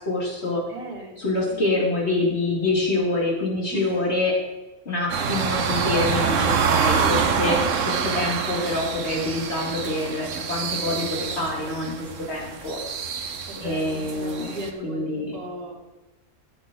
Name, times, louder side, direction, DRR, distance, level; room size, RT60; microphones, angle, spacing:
voice 1, 0.0-0.6 1.2-4.3 4.8-12.8 13.6-14.5 14.8-15.4, left 2 dB, 45° left, -3 dB, 3.0 m, -26 dB
voice 2, 0.7-1.2 1.5-1.7 3.7-4.1 5.2-5.5 6.8-7.3 10.9-11.6 13.5-15.7, right 1 dB, 90° right, -2 dB, 2.9 m, -37 dB
sound 1, 5.1-14.7, right 6 dB, 60° right, 1.2 m, -26 dB
14.5 x 7.9 x 3.8 m, 1.1 s
omnidirectional pair, 1.6 m